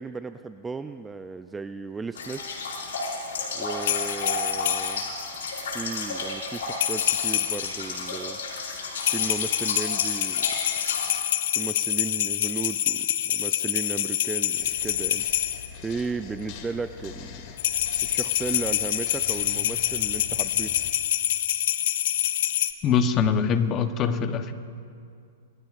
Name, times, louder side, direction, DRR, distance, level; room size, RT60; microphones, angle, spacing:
voice 1, 0.0-2.6 3.5-5.1 5.7-8.4 9.1-10.5 11.5-15.3 15.8-17.5 18.0-20.7, right 4 dB, 10° right, 9 dB, 0.3 m, -35 dB
sound 1, 2.1-11.1, left 3 dB, 90° left, 5.0 m, -32 dB
sound 2, 3.8-5.1 6.7-7.8 9.0-15.7 17.6-22.7, left 12 dB, 60° left, 0.7 m, -26 dB
sound 3, 14.6-20.9, left 6 dB, 45° left, 1.8 m, -43 dB
voice 2, 22.8-24.5, left 6 dB, 25° left, 9 dB, 0.9 m, -23 dB
26.5 x 21.5 x 2.5 m, 2.4 s
hypercardioid pair, 150°, 0 cm